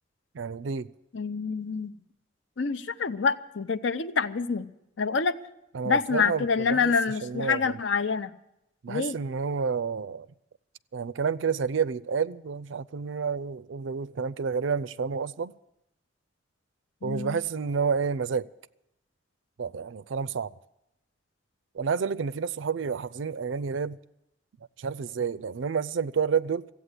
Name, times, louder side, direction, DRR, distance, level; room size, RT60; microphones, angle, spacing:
voice 1, 0.3-0.9 5.7-6.9 7.2-7.8 8.8-10.3 10.9-15.5 17.0-18.5 19.6-20.5 21.7-24.0 24.8-26.7, right 6 dB, 85° right, 0.5 m, -29 dB
voice 2, 1.1-1.9 2.6-4.7 5.0-5.4 5.8-8.3 8.9-9.2 17.0-17.4, left 5 dB, 75° left, 0.7 m, -27 dB
15.0 x 8.5 x 9.7 m
head